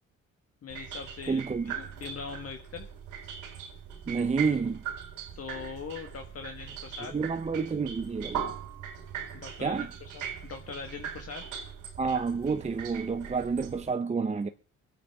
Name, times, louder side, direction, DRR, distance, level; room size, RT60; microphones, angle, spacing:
voice 1, 0.6-2.9 5.3-7.1 9.3-11.4, left 5 dB, 50° left, 1.6 m, -41 dB
sound 1, 0.7-13.9, right 8 dB, 90° right, 3.5 m, -40 dB
voice 2, 1.3-1.7 4.1-4.8 7.1-8.5 9.6-9.9 12.0-14.5, right 5 dB, 25° right, 0.7 m, -29 dB
24.0 x 8.5 x 3.5 m
cardioid pair, 90°, 30 cm